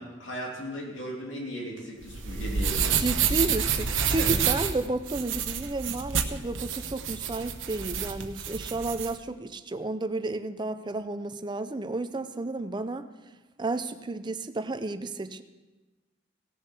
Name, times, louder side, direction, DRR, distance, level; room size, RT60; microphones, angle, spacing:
voice 1, 0.0-3.0 4.2-4.3, equal, 75° left, -2 dB, 2.9 m, -36 dB
sound 1, 2.0-9.1, right 7 dB, 85° right, 1.0 m, -28 dB
voice 2, 3.0-13.1 13.6-15.4, right 2 dB, 25° right, 11 dB, 0.5 m, -32 dB
17.5 x 7.1 x 5.8 m, 1.2 s
head